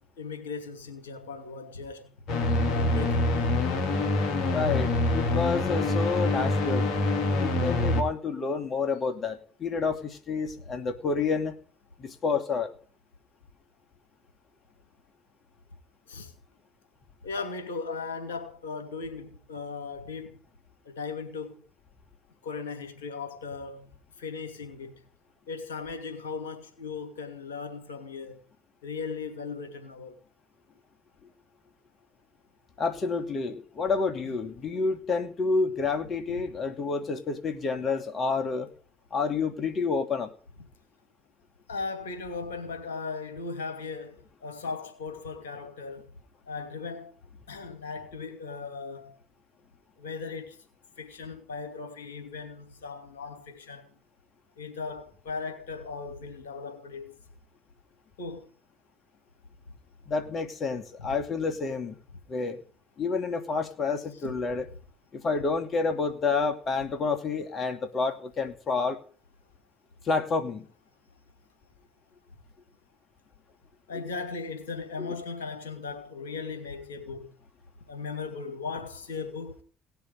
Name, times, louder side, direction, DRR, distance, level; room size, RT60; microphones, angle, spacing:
voice 1, 0.2-2.1 2.7-3.5 16.1-16.3 17.2-20.4 20.8-21.6 22.4-24.9 25.5-28.4 28.8-30.2 41.7-46.1 46.5-47.1 47.5-49.2 50.0-50.6 51.0-53.9 54.6-57.1 58.2-58.5 61.0-61.1 64.2-64.4 73.9-77.3 77.9-79.6, left 4 dB, 90° left, 2.6 m, -37 dB
sound 1, 2.3-8.0, left 2 dB, 65° left, 2.8 m, -25 dB
voice 2, 4.5-6.9 7.4-11.5 12.0-12.7 32.8-38.7 39.1-40.3 60.1-62.0 62.3-62.6 63.0-64.7 65.1-69.0 70.0-70.7 73.9-74.0 75.0-75.1, left 4 dB, 50° left, 2.6 m, -29 dB
18.0 x 7.1 x 9.0 m
hypercardioid pair, 55°, 0 cm